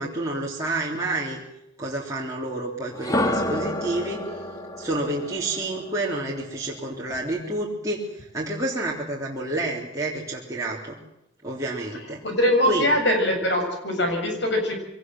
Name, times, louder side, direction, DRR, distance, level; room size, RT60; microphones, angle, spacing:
voice 1, 0.0-1.4 1.8-4.2 4.8-11.0 11.4-12.2 12.6-12.9, right 2 dB, 15° right, -5 dB, 3.5 m, -29 dB
sound 1, 2.9-6.9, left 1 dB, 20° left, 1.8 m, -29 dB
voice 2, 12.2-14.8, left 1 dB, 65° left, 4 dB, 7.3 m, -22 dB
23.5 x 19.0 x 7.8 m, 0.86 s
head